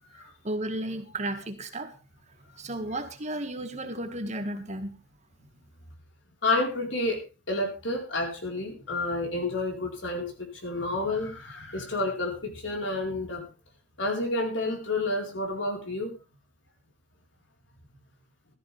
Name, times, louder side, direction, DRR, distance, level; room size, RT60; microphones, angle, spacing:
voice 1, 0.4-1.9 2.6-4.9, right 1 dB, 40° right, 7 dB, 1.9 m, -33 dB
voice 2, 6.4-7.2 7.5-13.5 14.0-16.1, left 2 dB, 75° left, 2 dB, 4.5 m, -30 dB
14.5 x 13.5 x 3.5 m, 0.30 s
head